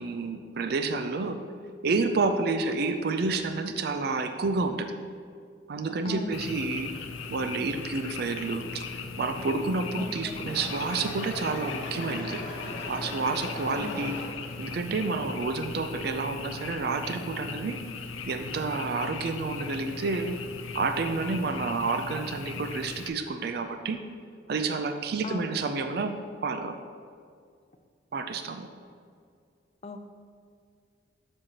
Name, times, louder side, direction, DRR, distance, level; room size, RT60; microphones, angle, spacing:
voice 1, 0.0-1.4 1.8-4.9 5.7-6.9 7.3-8.8 9.2-12.4 12.9-14.2 14.6-17.8 18.3-20.4 20.7-24.0 24.5-26.1 26.4-26.8 28.1-28.7, right 3 dB, 55° right, 7 dB, 0.4 m, -29 dB
voice 2, 6.0-6.4 10.0-10.5 13.7-14.2 25.2-25.6 29.8-30.0, left 2 dB, 30° left, 6 dB, 0.4 m, -38 dB
Frog, 6.3-23.1, left 5 dB, 90° left, 0.5 m, -38 dB
sound 1, 10.5-14.6, left 1 dB, 75° left, 1.6 m, -38 dB
7.6 x 6.3 x 2.9 m, 2.2 s
head